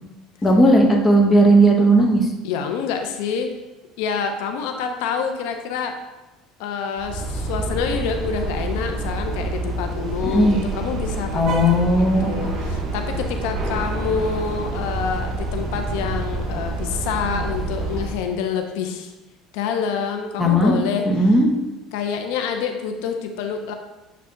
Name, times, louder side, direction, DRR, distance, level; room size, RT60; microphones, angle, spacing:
voice 1, 0.4-2.3 10.2-10.6 11.3-12.3 20.4-20.7 21.0-21.5, right 1 dB, 20° left, 1 dB, 1.1 m, -16 dB
voice 2, 2.4-3.5 4.0-5.9 6.6-19.1 19.5-21.3 21.9-23.7, left 6 dB, 80° left, 5 dB, 0.6 m, -27 dB
sound 1, 7.0-18.2, right 2 dB, 40° right, 1.1 m, -27 dB
7.6 x 3.3 x 3.9 m, 1.0 s
supercardioid pair, 120°, 0 cm